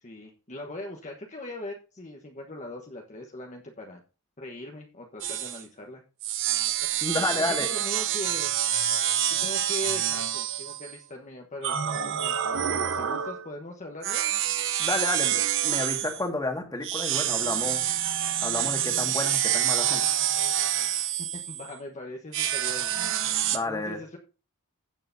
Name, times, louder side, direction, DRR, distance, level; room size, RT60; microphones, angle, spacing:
voice 1, 0.0-4.0 4.4-6.0 7.3-8.5 9.3-14.3 21.3-23.0 23.5-24.2, left 1 dB, 35° left, 1 dB, 1.2 m, -40 dB
sound 1, 5.2-5.6 6.2-11.0 11.6-13.5 14.0-16.2 16.8-21.7 22.3-23.6, right 10 dB, 60° right, 0.8 m, -27 dB
voice 2, 7.0-7.7 14.8-17.9 18.4-20.0 23.5-24.0, left 2 dB, 15° left, 4 dB, 1.8 m, -30 dB
16.0 x 6.6 x 2.7 m, 0.33 s
head